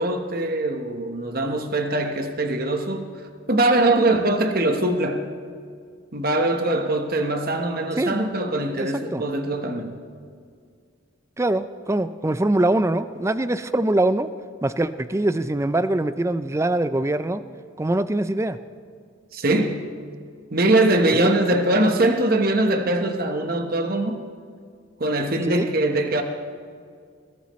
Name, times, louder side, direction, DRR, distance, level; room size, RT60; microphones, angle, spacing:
voice 1, 0.0-3.1 3.5-5.3 6.1-10.0 19.3-19.9 20.5-24.2 25.0-26.2, right 2 dB, 45° right, 5 dB, 1.2 m, -22 dB
voice 2, 8.8-9.2 11.4-14.3 14.6-17.4 17.8-18.6 21.1-21.6 25.5-25.7, right 1 dB, 15° right, 12 dB, 0.4 m, -23 dB
21.0 x 17.0 x 3.1 m, 2.2 s
head